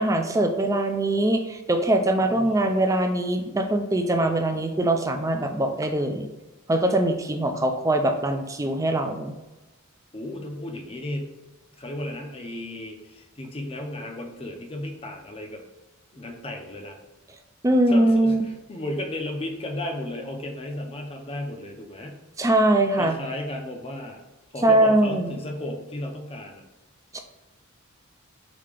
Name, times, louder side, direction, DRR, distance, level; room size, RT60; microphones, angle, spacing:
voice 1, 0.0-6.3 6.7-9.3 17.6-18.4 22.4-23.1 24.6-25.4 27.1-27.2, right 1 dB, 15° right, 5 dB, 0.4 m, -22 dB
voice 2, 2.2-2.8 8.6-8.9 10.1-11.3 11.8-15.6 16.1-17.0 17.9-22.2 23.0-24.2 24.5-26.6, left 1 dB, 25° left, 3 dB, 0.6 m, -34 dB
5.1 x 2.8 x 3.4 m, 1.1 s
head